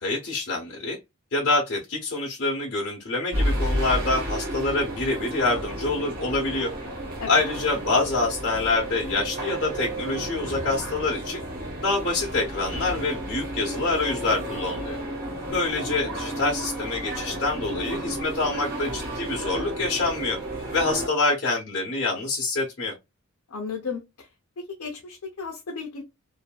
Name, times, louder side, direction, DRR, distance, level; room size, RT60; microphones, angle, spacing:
voice 1, 0.0-1.0 1.3-6.7 7.3-11.4 11.8-15.0 15.5-20.4 20.7-22.9, left 3 dB, 50° left, 0.9 m, -26 dB
sound 1, 3.3-21.1, right 1 dB, 40° right, 1.4 m, -32 dB
voice 2, 23.5-24.3 24.8-26.0, left 5 dB, 85° left, 0.7 m, -34 dB
2.7 x 2.5 x 2.2 m
head